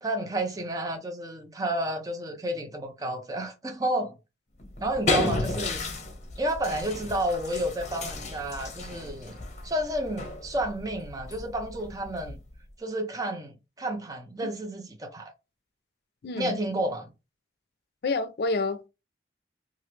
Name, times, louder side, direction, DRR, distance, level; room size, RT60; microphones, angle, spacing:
voice 1, 0.0-4.1 4.8-5.8 6.4-9.4 9.6-12.4 12.8-15.3 16.4-17.1, right 1 dB, 20° right, 0.5 m, -31 dB
sound 1, 4.6-12.7, left 2 dB, 40° left, 0.7 m, -34 dB
voice 2, 16.2-16.6 18.0-18.9, left 3 dB, 65° left, 0.4 m, -29 dB
3.0 x 2.4 x 3.1 m
head